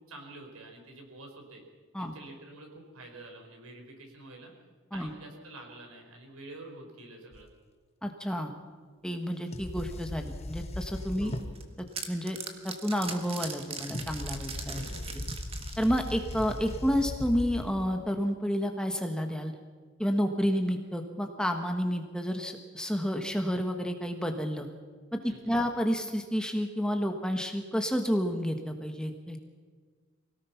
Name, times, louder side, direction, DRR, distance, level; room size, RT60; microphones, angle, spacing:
voice 1, 0.0-1.6 2.0-4.5 4.9-7.5 11.2-11.6 14.7-15.4 25.2-25.6, right 2 dB, 90° right, 2 dB, 4.9 m, -48 dB
sound 1, 7.3-7.4 9.5-11.7 13.8-18.0, left 1 dB, 30° left, 0.7 m, -38 dB
voice 2, 8.0-8.5 9.0-11.3 12.1-12.4 12.6-14.9 15.8-19.5 20.0-24.7 25.1-29.4, equal, 5° left, 4 dB, 1.3 m, -30 dB
sound 2, 11.3-16.8, right 5 dB, 25° right, 1.6 m, -41 dB
25.0 x 18.0 x 5.8 m, 1.5 s
head